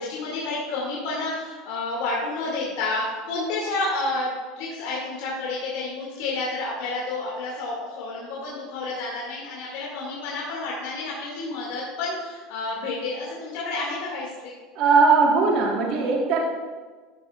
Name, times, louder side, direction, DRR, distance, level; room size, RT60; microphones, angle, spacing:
voice 1, 0.0-14.5, left 2 dB, 70° left, -6 dB, 2.1 m, -30 dB
voice 2, 14.7-16.4, right 4 dB, 55° right, -1 dB, 1.4 m, -19 dB
12.5 x 6.2 x 2.4 m, 1.4 s
supercardioid pair, 130°, 0 cm